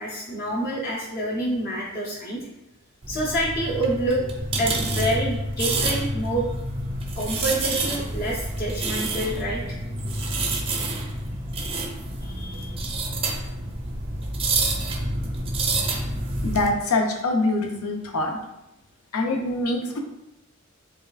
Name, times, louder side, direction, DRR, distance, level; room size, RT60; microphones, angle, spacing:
voice 1, 0.0-2.4 3.1-4.3 4.6-6.5 7.2-9.6 12.2-12.8, right 1 dB, 45° left, -5 dB, 0.6 m, -27 dB
sound 1, 3.0-16.7, right 2 dB, 25° right, 0.5 m, -28 dB
voice 2, 16.4-18.4 19.1-20.0, left 2 dB, 85° left, 3 dB, 0.6 m, -24 dB
5.4 x 2.3 x 2.4 m, 0.92 s
head